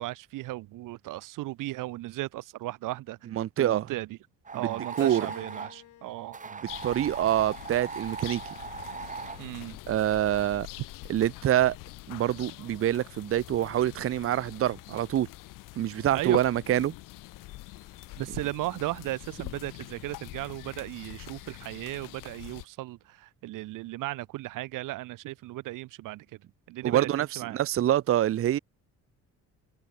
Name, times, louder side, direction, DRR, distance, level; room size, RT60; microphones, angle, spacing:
voice 1, 0.0-3.2 3.6-4.2 4.5-6.4 9.4-9.8 16.1-16.4 18.1-26.2 26.7-27.1 27.3-27.6, right 17 dB, 85° right, 1.7 m, -36 dB
voice 2, 3.3-3.8 4.5-4.7 5.0-5.3 6.8-8.4 9.9-10.7 11.1-11.8 12.1-15.3 15.8-16.9 26.8-27.3 27.5-28.6, right 12 dB, 45° right, 0.7 m, -26 dB
sound 1, 4.5-5.8 6.3-9.4, right 5 dB, 25° right, 1.8 m, -39 dB
Keyboard (musical), 5.0-7.5 8.1-9.3, left 13 dB, 70° left, 2.7 m, -50 dB
sound 2, 6.7-22.7, left 19 dB, 85° left, 1.3 m, -44 dB
cardioid pair, 115°, 31 cm